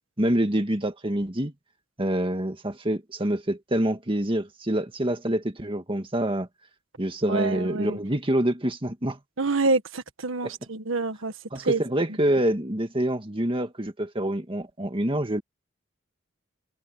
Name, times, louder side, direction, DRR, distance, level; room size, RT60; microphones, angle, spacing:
voice 1, 0.2-1.5 2.0-6.5 7.0-9.2 10.4-10.5 11.5-15.4, right 1 dB, 25° right, 1.8 m, -26 dB
voice 2, 7.3-8.0 9.4-11.3 11.6-11.8, right 3 dB, 75° right, 1.6 m, -26 dB
head